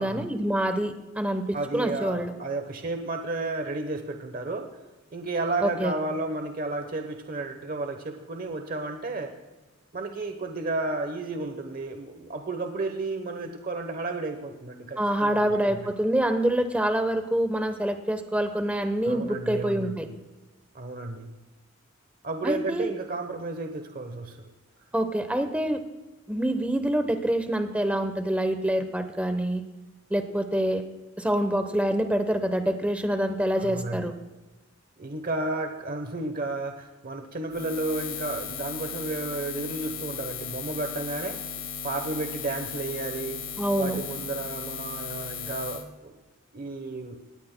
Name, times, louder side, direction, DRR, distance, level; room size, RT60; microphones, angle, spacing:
voice 1, 0.0-2.3 5.6-6.0 15.0-20.1 22.4-22.9 24.9-25.8 26.3-29.6 30.1-30.8 31.2-34.1 43.6-44.0, right 1 dB, 5° right, 8 dB, 0.8 m, -26 dB
voice 2, 1.5-4.7 5.1-9.3 9.9-15.8 19.0-20.1 20.7-21.3 22.2-24.4 33.6-34.1 35.0-41.4 41.8-43.4 43.8-46.1 46.5-47.2, right 2 dB, 40° right, 5 dB, 0.9 m, -32 dB
Buzz, 37.5-45.8, left 6 dB, 65° left, 1.5 m, -36 dB
19.0 x 17.0 x 2.2 m, 1.2 s
head